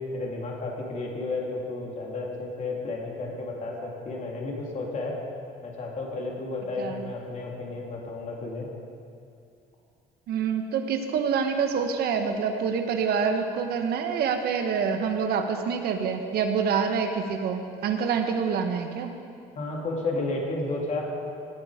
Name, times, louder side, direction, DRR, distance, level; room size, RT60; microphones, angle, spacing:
voice 1, 0.1-5.2 5.6-8.7 19.5-21.0, left 2 dB, 45° left, -2 dB, 3.1 m, -32 dB
voice 2, 6.8-7.1 10.3-19.1, right 6 dB, 70° right, 6 dB, 1.1 m, -26 dB
18.0 x 8.8 x 5.0 m, 2.4 s
cardioid pair, 110°, 17 cm